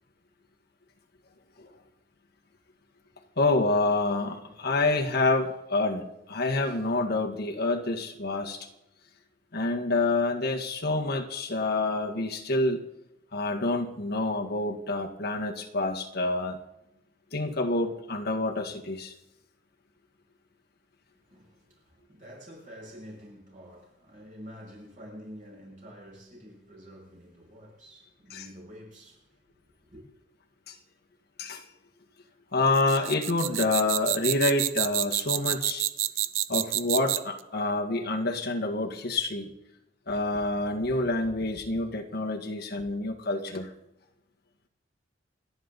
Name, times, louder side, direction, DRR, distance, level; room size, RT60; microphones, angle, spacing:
voice 1, 3.4-8.7 9.5-12.8 13.3-16.6 17.3-19.1 28.3-28.5 30.7-30.8 31.4-31.6 32.5-35.9 36.5-39.5 40.1-43.7, left 2 dB, 55° left, 1.8 m, -27 dB
voice 2, 4.4-4.9 21.1-29.4 29.7-30.0, equal, 40° right, 7.0 m, -48 dB
sound 1, 32.7-37.4, right 15 dB, 80° right, 0.6 m, -28 dB
29.0 x 10.0 x 4.1 m
head